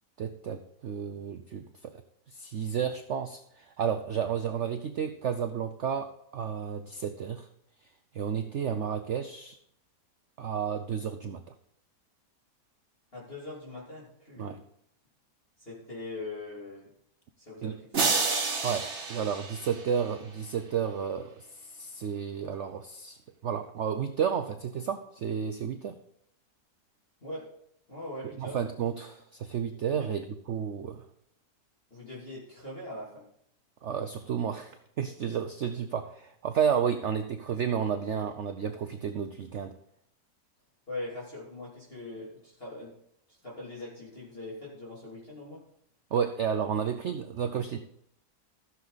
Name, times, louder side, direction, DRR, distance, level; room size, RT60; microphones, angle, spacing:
voice 1, 0.2-2.0 2.3-7.5 8.1-9.6 10.4-11.4 14.4-14.6 17.6-17.8 18.6-26.0 28.4-31.1 33.8-39.7 46.1-47.8, right 7 dB, 60° right, 8 dB, 0.8 m, -32 dB
voice 2, 13.1-14.6 15.6-16.9 17.4-17.7 27.2-27.5 27.9-28.6 30.0-30.1 31.9-33.2 40.9-42.9 43.4-45.6, left 2 dB, 35° left, -7 dB, 3.1 m, -41 dB
sound 1, 17.9-20.3, right 4 dB, 45° right, 1.5 m, -30 dB
14.5 x 6.8 x 4.0 m, 0.73 s
omnidirectional pair, 1.8 m